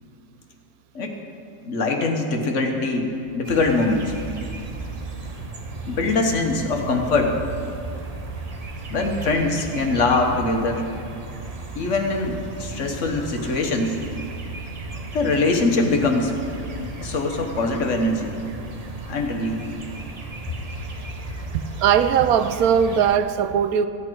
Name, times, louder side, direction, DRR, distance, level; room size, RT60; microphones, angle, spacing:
voice 1, 1.6-3.1 3.3-4.1 5.9-7.3 8.9-10.8 11.7-14.0 15.1-16.3 17.0-18.4 19.1-19.6, left 3 dB, 60° left, 3 dB, 1.3 m, -22 dB
sound 1, 3.4-23.2, right 3 dB, 35° right, 0.7 m, -35 dB
voice 2, 21.5-23.9, right 8 dB, 85° right, 11 dB, 1.1 m, -19 dB
15.0 x 8.4 x 4.6 m, 2.6 s
omnidirectional pair, 1.5 m